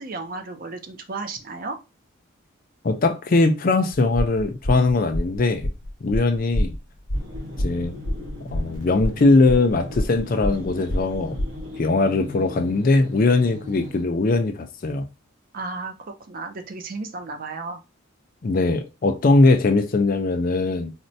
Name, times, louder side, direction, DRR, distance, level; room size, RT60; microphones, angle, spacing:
voice 1, 0.0-1.8 15.5-15.9 16.3-17.8, right 3 dB, 45° right, 0.5 m, -33 dB
voice 2, 2.8-5.7 6.0-6.7 7.6-7.9 8.5-11.4 11.8-15.0 18.4-20.9, left 3 dB, 45° left, 0.4 m, -20 dB
sound 1, 3.9-11.7, equal, 75° left, 0.8 m, -27 dB
sound 2, 7.1-14.0, left 1 dB, 90° right, 1.2 m, -39 dB
4.2 x 2.1 x 2.6 m
head